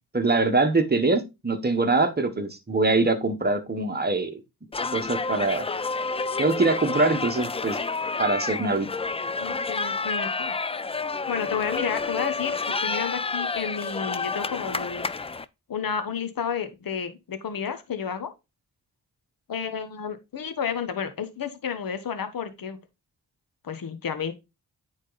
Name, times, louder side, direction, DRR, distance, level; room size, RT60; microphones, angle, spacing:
voice 1, 0.1-4.4 4.9-5.7 6.4-7.8 8.2-8.9, right 3 dB, 25° right, 1.3 m, -23 dB
sound 1, 4.7-15.4, left 4 dB, 15° left, 0.3 m, -29 dB
voice 2, 9.4-10.5 11.3-15.1 15.7-18.3 19.5-22.8 23.6-24.3, left 7 dB, 60° left, 1.1 m, -31 dB
9.0 x 3.7 x 4.0 m
cardioid pair, 65°, 40 cm